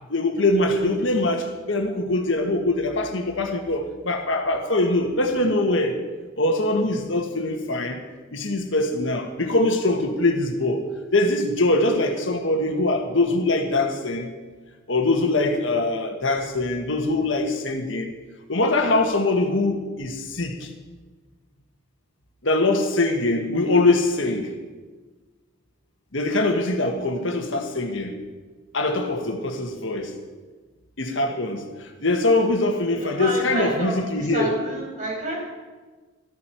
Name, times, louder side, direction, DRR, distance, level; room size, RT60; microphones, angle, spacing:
voice 1, 0.1-6.0 6.4-8.0 8.3-10.8 11.1-14.3 14.9-18.1 18.5-20.7 22.4-24.5 26.1-28.2 28.7-30.1 31.0-34.5, left 2 dB, 70° left, 4 dB, 1.5 m, -23 dB
voice 2, 33.0-35.4, right 1 dB, 40° right, -3 dB, 5.7 m, -29 dB
14.5 x 13.5 x 4.5 m, 1.3 s
head